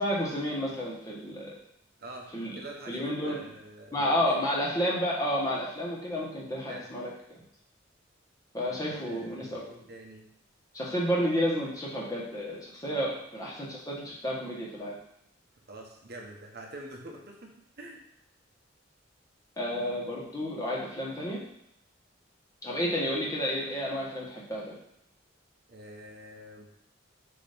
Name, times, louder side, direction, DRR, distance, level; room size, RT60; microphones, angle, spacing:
voice 1, 0.0-1.5 2.3-2.6 2.9-3.4 3.9-7.1 8.5-9.8 10.7-14.9 19.6-21.4 22.6-24.7, equal, 15° left, -5 dB, 1.5 m, -31 dB
voice 2, 2.0-4.4 6.7-6.9 8.8-10.3 13.0-13.1 15.7-18.0 25.7-26.7, right 1 dB, 50° right, 0 dB, 1.2 m, -46 dB
6.8 x 3.1 x 5.2 m, 0.78 s
head